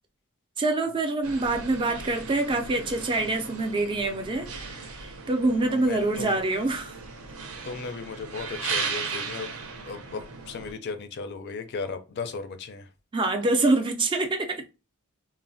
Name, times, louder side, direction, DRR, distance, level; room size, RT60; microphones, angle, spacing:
voice 1, 0.6-4.5 5.0-7.0 13.1-14.6, right 2 dB, 20° right, 0.3 m, -25 dB
sound 1, 1.2-10.7, right 5 dB, 70° right, 0.6 m, -37 dB
voice 2, 5.7-6.4 7.6-9.5 9.8-12.9, left 4 dB, 50° left, 0.4 m, -36 dB
3.1 x 2.0 x 2.5 m
head